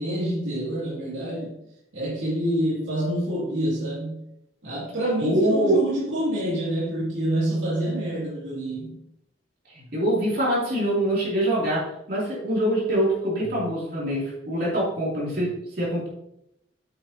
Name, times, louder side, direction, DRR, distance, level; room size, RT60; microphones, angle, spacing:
voice 1, 0.0-1.6 1.9-4.2 4.6-9.0, right 1 dB, 90° right, -8 dB, 2.8 m, -27 dB
voice 2, 5.2-5.8 9.7-15.5 15.8-16.1, right 1 dB, 55° right, -6 dB, 3.0 m, -24 dB
9.0 x 7.6 x 2.9 m, 0.79 s
head